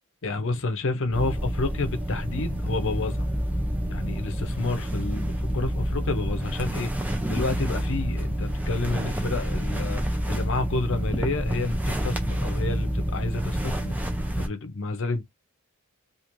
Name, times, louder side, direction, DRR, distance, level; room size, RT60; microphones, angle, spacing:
voice 1, 0.2-3.3 3.9-10.0 10.3-13.9 14.4-15.2, left 3 dB, 60° left, 0.6 m, -30 dB
sound 1, 1.1-14.5, equal, 5° right, 0.5 m, -28 dB
3.0 x 2.5 x 2.5 m
head